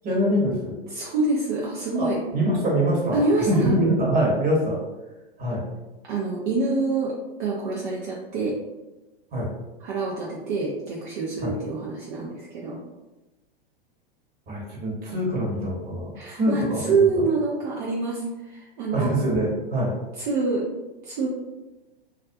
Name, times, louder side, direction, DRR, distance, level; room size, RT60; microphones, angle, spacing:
voice 1, 0.0-0.8 2.0-3.2 3.5-4.8 5.4-5.7 9.3-9.5 11.4-11.5 14.5-17.2 18.9-20.0, right 1 dB, 30° right, -4 dB, 1.0 m, -24 dB
voice 2, 0.9-2.2 3.1-3.7 6.0-7.1 7.4-8.6 9.8-12.8 16.1-19.1 20.2-20.7 21.0-21.3, right 3 dB, 50° right, -4 dB, 0.6 m, -26 dB
2.4 x 2.2 x 2.6 m, 1.1 s
hypercardioid pair, 110°, 30 cm